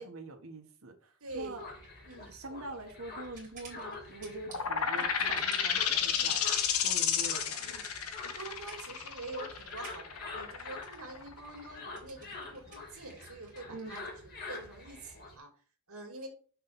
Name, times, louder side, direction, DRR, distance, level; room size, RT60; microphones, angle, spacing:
voice 1, 0.0-1.6 2.3-6.4 6.8-7.7 13.7-14.0, right 2 dB, 70° right, 1.5 m, -44 dB
voice 2, 1.2-1.6 2.0-2.4 4.9-5.1 6.2-6.4 7.6-7.9 8.2-15.5 15.9-16.3, right 2 dB, 85° right, 2.4 m, -46 dB
sound 1, 1.3-15.4, left 3 dB, 45° left, 2.8 m, -47 dB
sound 2, 1.3-14.1, right 4 dB, 35° right, 3.0 m, -54 dB
sound 3, 4.5-11.8, left 8 dB, 90° left, 1.0 m, -31 dB
6.6 x 4.0 x 5.9 m
head